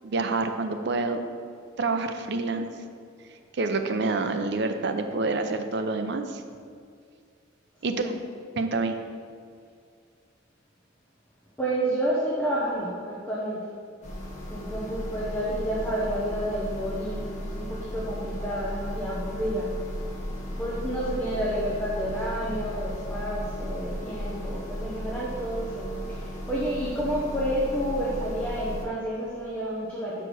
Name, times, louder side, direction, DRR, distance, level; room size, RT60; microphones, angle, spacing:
voice 1, 0.0-1.2 1.8-2.7 3.5-6.4 7.8-8.1 8.5-9.0, right 3 dB, 60° right, 7 dB, 0.6 m, -27 dB
voice 2, 11.6-13.7 14.5-19.7 20.6-30.2, right 1 dB, 10° left, -7 dB, 1.0 m, -30 dB
sound 1, 14.0-28.9, equal, 40° left, 1.6 m, -35 dB
5.8 x 5.0 x 6.2 m, 2.2 s
head